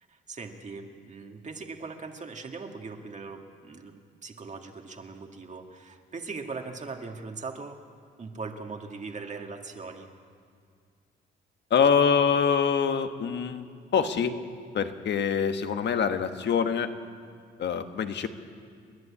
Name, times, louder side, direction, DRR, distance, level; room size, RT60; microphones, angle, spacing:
voice 1, 0.0-3.9 4.2-7.8 8.2-10.1, right 4 dB, 35° right, 3 dB, 2.1 m, -40 dB
voice 2, 11.7-13.6 13.9-14.4 14.7-16.9 17.6-18.3, left 6 dB, 60° left, 8 dB, 1.4 m, -24 dB
29.5 x 11.0 x 8.5 m, 2.2 s
cardioid pair, 90°, 20 cm